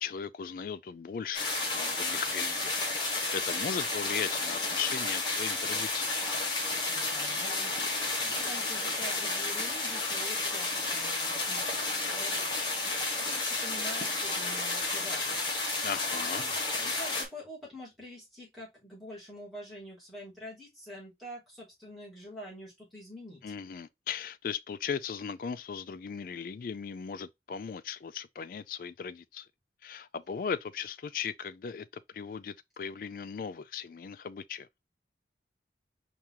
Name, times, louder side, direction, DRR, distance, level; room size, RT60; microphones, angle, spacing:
voice 1, 0.0-2.8 3.1-6.2 15.8-16.5 23.4-29.5 29.8-31.9 32.1-34.7, left 7 dB, 50° left, 0.3 m, -37 dB
sound 1, 1.3-17.2, left 3 dB, 25° left, 1.1 m, -31 dB
voice 2, 6.9-15.5 16.4-23.4, left 1 dB, ahead, 2.5 m, -46 dB
4.4 x 2.9 x 3.6 m
head